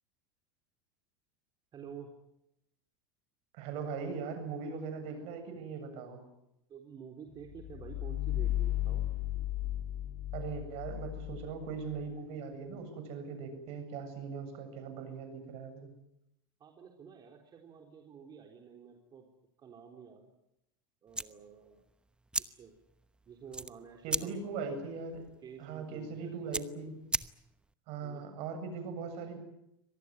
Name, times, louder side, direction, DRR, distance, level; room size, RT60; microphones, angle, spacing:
voice 1, 1.7-2.1 4.4-4.5 6.7-9.1 16.6-19.3 19.6-20.3 21.0-21.8 22.5-22.7 23.3-24.4 25.4-26.6 28.0-28.3, right 7 dB, 35° right, 3 dB, 3.9 m, -50 dB
voice 2, 3.5-6.2 10.3-15.9 24.0-25.3 25.6-27.0 27.9-29.4, right 5 dB, 55° right, 8 dB, 7.8 m, -40 dB
sound 1, 7.4-12.1, left 14 dB, 70° left, 3.3 m, -35 dB
sound 2, 21.1-27.7, right 2 dB, 5° right, 0.9 m, -40 dB
25.0 x 19.0 x 9.6 m, 0.82 s
hypercardioid pair, 95°, 12 cm